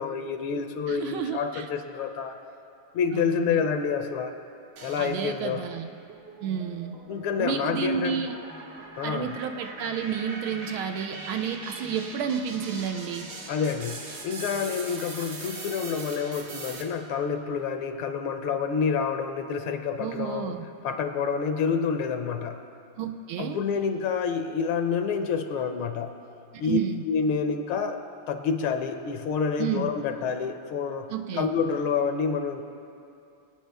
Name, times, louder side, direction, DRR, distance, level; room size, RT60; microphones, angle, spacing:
voice 1, 0.0-2.4 2.9-4.3 4.8-5.6 7.1-8.3 9.0-9.4 13.5-20.6 20.8-22.6 23.4-26.1 26.6-26.8 27.1-31.1 31.4-32.6, left 6 dB, 75° left, 7 dB, 1.5 m, -28 dB
voice 2, 0.9-1.7 3.1-3.7 5.0-5.9 6.4-7.0 7.4-8.3 9.0-13.3 20.0-20.6 23.0-23.6 26.6-27.0 29.6-29.9 31.1-31.5, right 8 dB, 75° right, 7 dB, 1.4 m, -31 dB
sound 1, 4.8-5.6 6.1-16.8, right 3 dB, 55° right, 1.6 m, -41 dB
23.5 x 9.0 x 3.4 m, 2.6 s
omnidirectional pair, 2.4 m